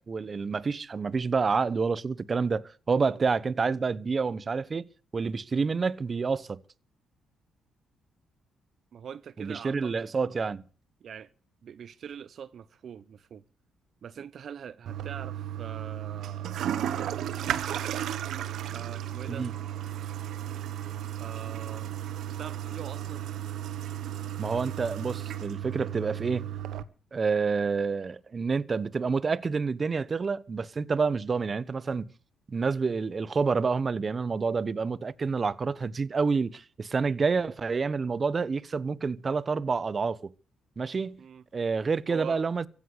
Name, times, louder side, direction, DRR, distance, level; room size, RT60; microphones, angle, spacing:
voice 1, 0.0-4.8 5.1-6.6 9.4-10.6 19.3-19.5 24.4-26.5 27.1-32.1 32.5-40.3 40.8-41.2 41.5-42.7, right 4 dB, 35° right, 1.0 m, -28 dB
voice 2, 8.9-10.1 11.0-11.3 11.6-13.4 14.0-16.9 18.7-19.5 21.2-21.9 22.4-23.3 41.2-41.4 42.1-42.4, right 8 dB, 60° right, 0.7 m, -43 dB
Toilet flush, 14.8-26.8, right 10 dB, 75° right, 1.3 m, -34 dB
16.0 x 10.5 x 8.2 m
cardioid pair, 90°, 0 cm